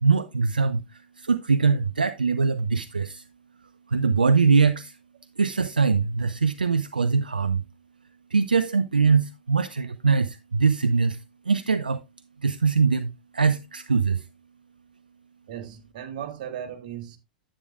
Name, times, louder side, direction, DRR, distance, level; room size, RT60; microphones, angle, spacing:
voice 1, 0.0-3.2 3.9-5.0 5.4-7.6 8.3-12.0 12.4-14.3, right 5 dB, 85° right, 0.4 m, -22 dB
voice 2, 15.5-17.2, right 9 dB, 55° right, 1.6 m, -36 dB
9.7 x 8.5 x 2.4 m
figure-of-eight pair, 95°, 5 cm